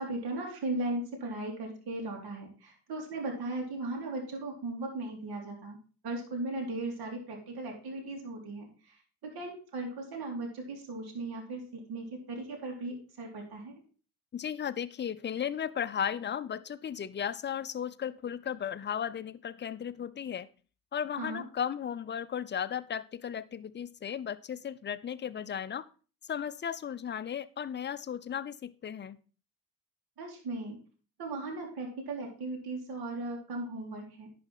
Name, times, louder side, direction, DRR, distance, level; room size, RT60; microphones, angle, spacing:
voice 1, 0.0-5.8 6.0-9.0 9.2-13.7 21.2-21.4 30.2-30.8 31.2-34.3, right 2 dB, 55° right, 0 dB, 2.9 m, -37 dB
voice 2, 14.3-20.5 20.9-25.8 26.3-29.2, left 8 dB, 25° left, 13 dB, 0.6 m, -35 dB
10.5 x 4.3 x 5.4 m, 0.38 s
hypercardioid pair, 50°, 44 cm